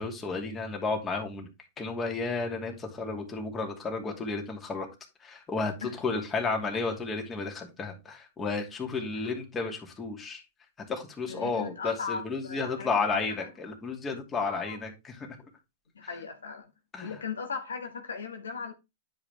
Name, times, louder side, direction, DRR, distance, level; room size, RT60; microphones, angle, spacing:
voice 1, 0.0-1.5 1.8-4.9 5.2-10.4 10.9-15.3 16.9-17.1, left 4 dB, 20° left, 2.5 m, -32 dB
voice 2, 11.2-13.5 14.4-14.8 15.9-16.7 17.0-18.7, left 5 dB, 90° left, 1.6 m, -38 dB
10.0 x 4.9 x 3.4 m
hypercardioid pair, 120°, 0 cm